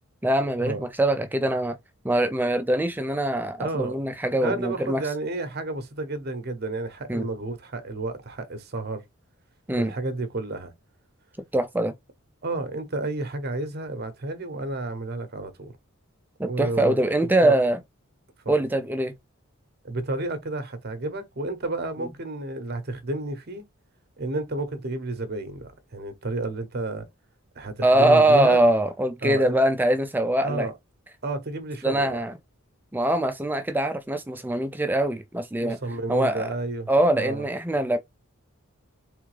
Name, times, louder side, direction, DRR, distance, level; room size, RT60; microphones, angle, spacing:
voice 1, 0.2-1.8 2.0-5.0 7.1-7.3 9.7-9.9 11.5-11.9 16.4-17.8 18.5-19.1 27.8-30.7 31.8-32.3 32.9-35.8 36.1-36.5 36.9-38.0, right 1 dB, 10° right, 0.3 m, -23 dB
voice 2, 3.6-4.0 4.4-9.0 9.7-10.7 12.4-15.7 16.5-17.6 18.4-18.6 19.8-23.6 24.2-27.1 27.6-28.6 29.2-29.6 30.4-30.7 31.2-32.2 35.6-37.5, right 2 dB, 45° right, 0.9 m, -31 dB
3.7 x 3.4 x 3.2 m
head